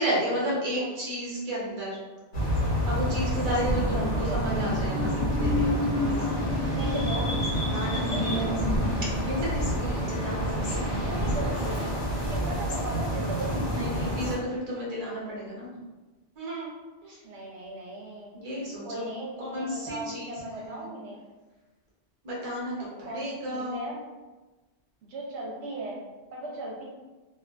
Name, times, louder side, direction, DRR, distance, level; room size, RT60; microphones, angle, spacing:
voice 1, 0.0-2.0 2.8-6.7 7.7-8.6 9.2-10.9 13.7-15.7 16.4-16.7 17.0-17.2 18.3-19.0 19.4-20.8 22.2-23.8, equal, 40° right, -6 dB, 0.8 m, -33 dB
sound 1, 2.3-14.3, equal, 75° left, 1.0 m, -28 dB
sound 2, 3.5-12.1 12.5-12.7, left 3 dB, 50° left, 0.5 m, -33 dB
voice 2, 3.9-4.6 6.8-7.3 8.1-8.6 11.1-12.0 12.3-13.6 17.2-18.3 18.8-21.2 23.0-24.0 25.0-26.8, right 1 dB, 80° right, -3 dB, 0.9 m, -37 dB
2.5 x 2.3 x 2.3 m, 1.2 s
omnidirectional pair, 1.1 m